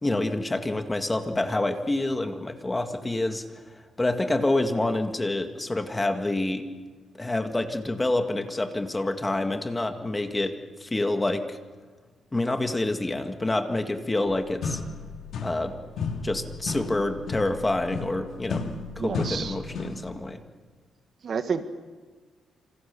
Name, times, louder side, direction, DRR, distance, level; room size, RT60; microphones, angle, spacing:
voice 1, 0.0-3.4 4.0-6.6 7.1-10.6 10.8-11.6 12.3-14.8 15.4-15.7 16.2-18.6 19.0-20.4, left 2 dB, 15° left, 7 dB, 1.9 m, -27 dB
sound 1, 14.3-14.4 14.6-15.7 16.0-20.1, left 4 dB, 65° left, 3.1 m, -33 dB
voice 2, 19.0-19.5 21.2-21.6, right 6 dB, 50° right, 9 dB, 1.6 m, -29 dB
28.0 x 26.5 x 6.9 m, 1.4 s
cardioid pair, 125°, 0 cm